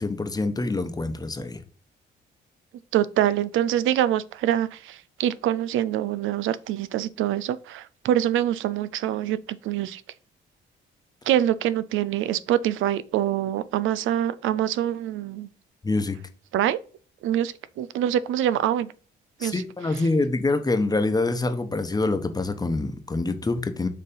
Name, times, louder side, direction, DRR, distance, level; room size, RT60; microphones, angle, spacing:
voice 1, 0.0-1.6 15.8-16.2 19.4-23.9, left 2 dB, 20° left, 1.0 m, -25 dB
voice 2, 2.9-9.4 9.6-10.0 11.3-15.5 16.5-16.8 17.2-18.9 19.4-19.6, right 11 dB, 80° right, 0.5 m, -25 dB
6.7 x 3.1 x 5.4 m
cardioid pair, 90°, 20 cm